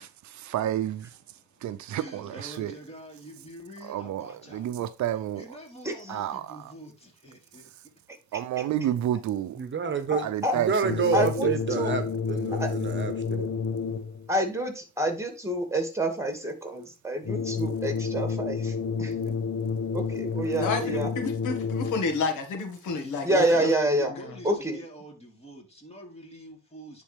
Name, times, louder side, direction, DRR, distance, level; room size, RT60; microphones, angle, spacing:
voice 1, 0.0-1.2 1.6-2.7 3.8-5.6 6.1-6.7 8.3-9.6 10.2-11.0, right 11 dB, 70° right, 0.7 m, -30 dB
voice 2, 1.3-4.7 5.3-7.7 23.0-27.0, equal, 20° left, 3.5 m, -45 dB
voice 3, 5.8-6.2 10.1-10.6 11.1-11.9 12.5-12.7 14.3-19.1 19.9-21.1 23.2-24.1 24.4-24.8, right 1 dB, 10° right, 2.5 m, -28 dB
voice 4, 9.6-10.3 10.6-13.5, right 6 dB, 40° right, 1.1 m, -28 dB
sound 1, 10.8-14.3 17.2-22.3, left 5 dB, 45° left, 1.0 m, -30 dB
voice 5, 20.6-23.7 24.1-24.4, left 4 dB, 80° left, 1.9 m, -30 dB
10.0 x 4.2 x 3.4 m
cardioid pair, 90°, 30 cm